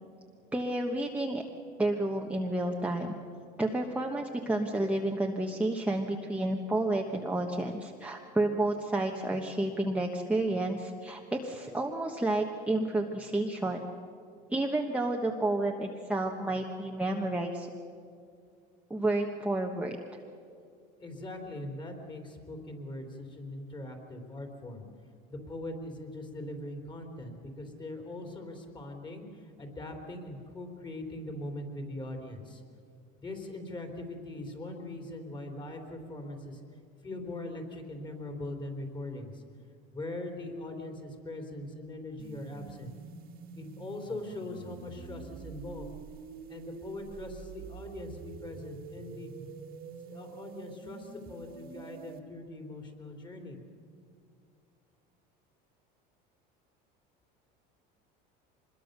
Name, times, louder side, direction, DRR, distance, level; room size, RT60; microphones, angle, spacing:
voice 1, 0.5-1.4 1.8-3.1 3.6-13.8 14.5-17.7 18.9-20.0, right 2 dB, 5° right, 0 dB, 1.2 m, -30 dB
voice 2, 21.0-24.8 25.3-32.6 33.2-36.6 37.0-39.4 39.9-42.9 43.5-45.9 46.5-49.3 50.1-53.6, left 1 dB, 20° left, 3 dB, 3.6 m, -41 dB
sound 1, 42.2-52.2, right 6 dB, 45° right, 1.8 m, -46 dB
25.0 x 21.5 x 6.7 m, 2.4 s
cardioid pair, 130°, 21 cm